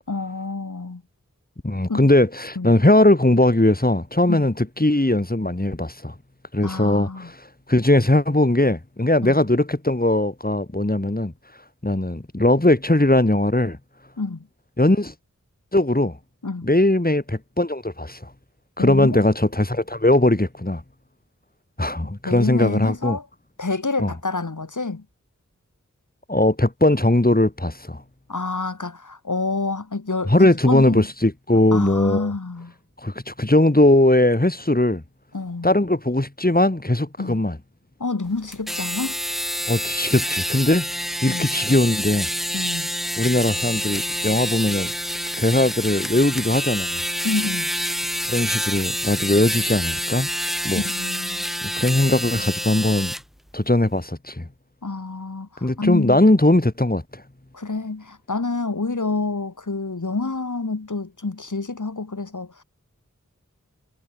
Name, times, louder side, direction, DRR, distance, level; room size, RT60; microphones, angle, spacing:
voice 1, 0.1-1.0 1.9-2.1 2.6-2.7 4.3-4.5 6.6-7.3 9.2-9.4 14.2-14.5 16.4-16.7 18.8-19.2 22.2-23.3 23.6-25.0 28.3-31.0 31.7-32.7 35.3-35.7 37.2-37.4 38.0-39.2 41.3-41.5 42.5-42.9 47.2-47.7 50.7-51.5 52.3-52.5 54.8-56.2 57.5-62.6, left 3 dB, 70° left, 2.6 m, -28 dB
voice 2, 1.6-6.1 6.5-11.3 11.8-13.8 14.8-15.1 15.7-16.2 16.6-18.3 18.8-20.8 21.8-23.2 24.0-24.1 26.3-28.0 30.3-32.3 33.0-35.0 35.6-37.6 39.7-40.9 41.2-42.3 43.2-44.9 45.4-47.0 48.3-50.3 50.6-50.8 51.6-53.1 53.5-54.5 55.6-57.2, left 1 dB, 30° left, 4.4 m, -19 dB
sound 1, 38.5-53.2, equal, ahead, 2.9 m, -27 dB
wide cardioid pair, 45°, 31 cm